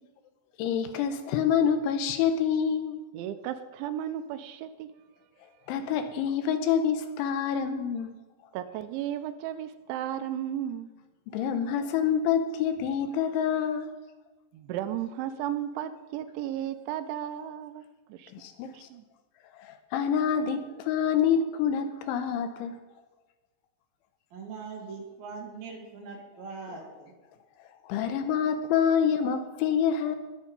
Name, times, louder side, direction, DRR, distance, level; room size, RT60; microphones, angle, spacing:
voice 1, 0.6-3.0 5.7-8.2 11.3-13.9 18.3-18.9 19.5-22.8 27.8-30.2, left 7 dB, 85° left, 8 dB, 3.3 m, -27 dB
voice 2, 3.1-4.9 8.5-10.9 14.5-17.8 18.1-18.3 18.7-19.0, right 11 dB, 85° right, 10 dB, 3.0 m, -34 dB
voice 3, 24.3-27.1, right 4 dB, 55° right, -1 dB, 3.6 m, -41 dB
20.0 x 7.2 x 5.4 m, 1.2 s
omnidirectional pair, 5.4 m